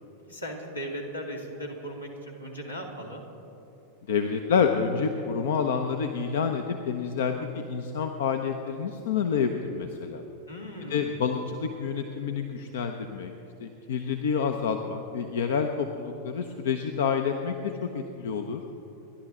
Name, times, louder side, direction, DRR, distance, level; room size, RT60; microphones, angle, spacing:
voice 1, 0.3-3.2 10.5-11.2, equal, 80° left, 0 dB, 2.3 m, -37 dB
voice 2, 4.1-10.2 10.9-13.3 13.6-18.6, left 6 dB, 60° left, 6 dB, 0.8 m, -28 dB
28.5 x 11.5 x 3.7 m, 2.9 s
figure-of-eight pair, 90°, 0 cm